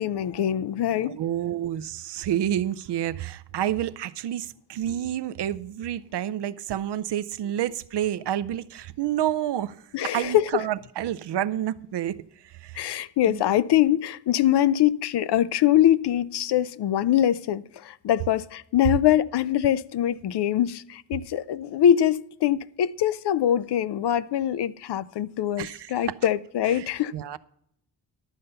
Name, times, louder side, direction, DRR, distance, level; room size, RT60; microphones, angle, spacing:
voice 1, 0.0-1.2 9.9-10.6 12.7-27.4, left 11 dB, 70° left, 0.5 m, -23 dB
voice 2, 1.1-9.8 10.0-12.2 12.4-12.9 13.3-13.4 25.6-26.1 26.7-27.4, right 11 dB, 70° right, 0.5 m, -29 dB
11.5 x 6.6 x 5.5 m
cardioid pair, 95°, 43 cm